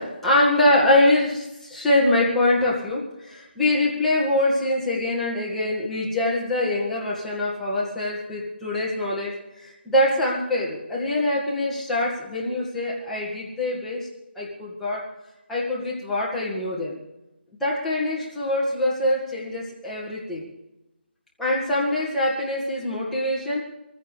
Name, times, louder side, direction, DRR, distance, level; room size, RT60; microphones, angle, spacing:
voice 1, 0.0-14.1 14.4-15.0 15.5-17.0 17.6-20.5 21.4-23.7, left 1 dB, 5° left, -6 dB, 1.8 m, -24 dB
23.5 x 15.5 x 3.3 m, 0.98 s
figure-of-eight pair, 170°, 6 cm